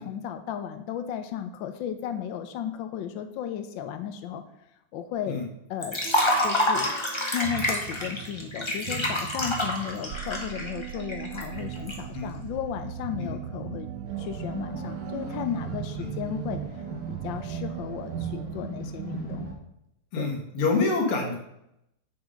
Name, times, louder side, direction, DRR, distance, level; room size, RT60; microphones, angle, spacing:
voice 1, 0.0-4.4 4.9-5.4 5.7-6.0 6.4-6.9 7.3-13.9 14.2-16.8 17.1-19.5 20.2-20.3, left 9 dB, 70° left, 7 dB, 1.3 m, -34 dB
Liquid, 5.8-11.9, left 1 dB, 15° left, 1.2 m, -27 dB
sound 1, 6.0-18.4, right 12 dB, 80° right, 1.4 m, -39 dB
sound 2, 14.0-19.5, right 5 dB, 40° right, 3.0 m, -37 dB
voice 2, 20.1-21.4, left 3 dB, 90° left, 0 dB, 2.8 m, -26 dB
7.5 x 7.1 x 5.1 m, 0.81 s
omnidirectional pair, 2.3 m